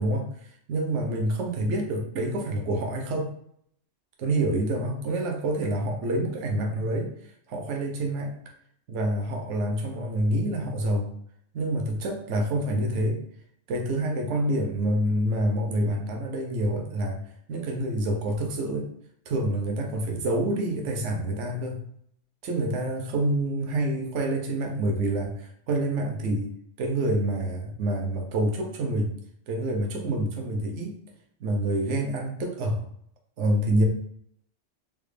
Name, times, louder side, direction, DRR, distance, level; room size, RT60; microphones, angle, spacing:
voice 1, 0.0-3.3 4.2-8.3 8.9-11.1 11.5-13.2 13.7-17.2 17.5-18.9 19.3-21.8 22.4-26.5 26.8-29.1 29.5-30.9 31.4-32.8 33.4-33.9, right 1 dB, 70° right, 2 dB, 1.0 m, -27 dB
3.6 x 2.4 x 3.1 m, 0.67 s
omnidirectional pair, 1.3 m